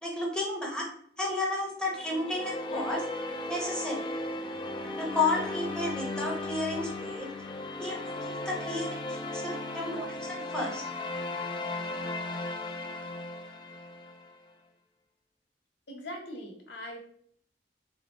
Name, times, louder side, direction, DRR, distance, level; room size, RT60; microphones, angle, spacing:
voice 1, 0.0-0.8 1.2-3.0 3.5-4.1 5.0-7.3 7.8-10.8, left 2 dB, 5° left, -3 dB, 0.8 m, -32 dB
sound 1, 1.9-14.3, left 2 dB, 25° left, 0.4 m, -36 dB
voice 2, 15.9-17.0, equal, 75° left, 1 dB, 1.0 m, -41 dB
4.0 x 2.0 x 3.6 m, 0.64 s
head